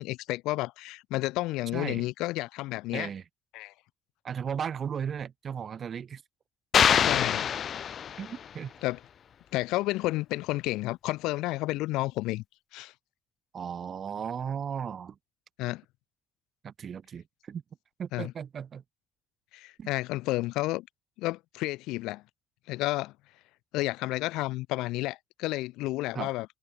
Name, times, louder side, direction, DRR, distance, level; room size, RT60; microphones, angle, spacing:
voice 1, 0.0-3.1 3.5-3.7 7.0-7.5 8.8-9.0 9.5-12.4 12.7-12.9 15.6-15.8 18.1-18.3 19.5-20.9 21.2-22.2 22.7-23.1 23.7-26.5, left 19 dB, 65° left, 5.5 m, -31 dB
voice 2, 1.7-2.1 2.9-3.2 4.2-6.2 8.2-8.7 13.5-15.2 16.6-17.6 18.0-18.8 19.8-19.9 26.1-26.3, right 7 dB, 45° right, 3.0 m, -35 dB
sound 1, 6.7-8.5, left 8 dB, 45° left, 0.4 m, -24 dB
figure-of-eight pair, 45°, 0 cm